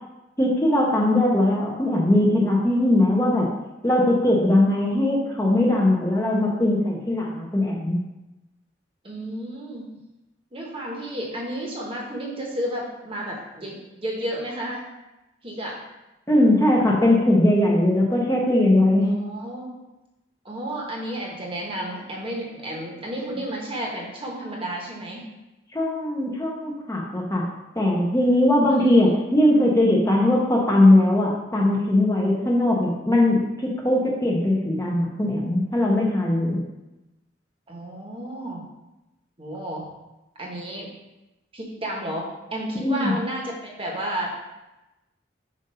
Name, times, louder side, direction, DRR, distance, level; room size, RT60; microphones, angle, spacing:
voice 1, 0.4-3.5 3.8-8.0 16.3-19.1 25.7-27.4 27.8-36.6 42.8-43.1, left 1 dB, 15° left, -3 dB, 0.8 m, -20 dB
voice 2, 9.0-9.9 10.5-14.8 15.4-15.7 19.0-19.7 20.4-25.2 28.7-28.9 37.7-38.6 39.4-39.8 40.4-40.9 41.5-44.3, right 1 dB, 30° right, -2 dB, 1.1 m, -32 dB
7.4 x 2.6 x 5.5 m, 1.0 s
head